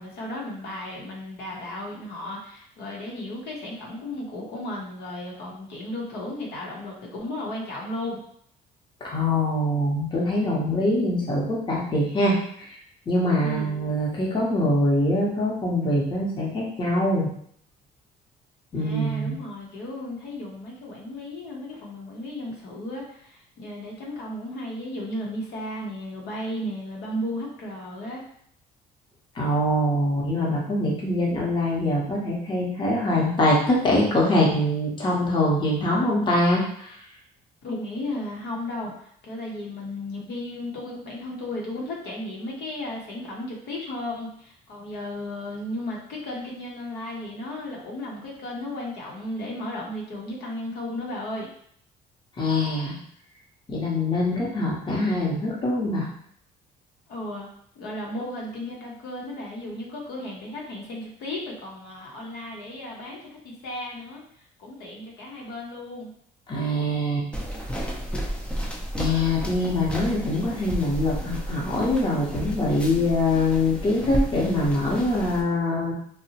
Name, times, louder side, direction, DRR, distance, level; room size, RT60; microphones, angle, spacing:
voice 1, 0.0-8.2 13.4-13.8 18.7-28.2 37.6-51.5 57.1-57.5 57.8-64.2 64.6-66.1, left 1 dB, 75° left, -2 dB, 0.8 m, -34 dB
voice 2, 9.0-12.7 13.1-17.3 18.7-19.4 29.4-36.9 52.4-53.0 53.7-56.1 66.5-67.3 69.0-75.9, left 1 dB, 30° left, -3 dB, 0.8 m, -23 dB
sound 1, 67.3-75.4, equal, 5° left, 0.4 m, -32 dB
2.8 x 2.0 x 2.8 m, 0.66 s
cardioid pair, 110°, 17 cm